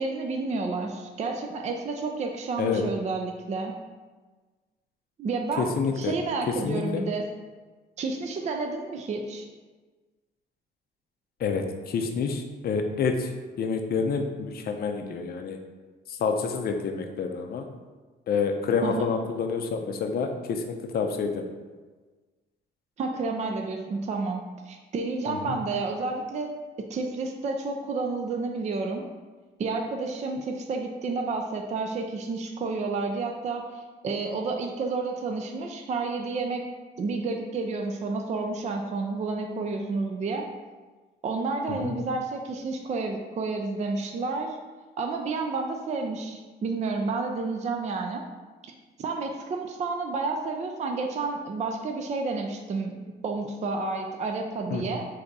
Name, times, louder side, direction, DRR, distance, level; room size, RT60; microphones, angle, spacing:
voice 1, 0.0-3.7 5.2-7.3 8.0-9.5 18.8-19.1 23.0-29.1 29.6-36.7 37.0-40.5 41.2-44.6 45.0-48.2 49.0-53.0 53.2-55.1, right 3 dB, 35° right, 3 dB, 0.4 m, -30 dB
voice 2, 5.6-6.1 6.5-7.0 11.4-13.3 13.6-15.6 16.1-17.7 18.3-21.5 25.3-25.6 41.7-41.9 54.7-54.8, left 5 dB, 50° left, 5 dB, 0.5 m, -28 dB
3.4 x 2.7 x 3.9 m, 1.3 s
cardioid pair, 90°, 20 cm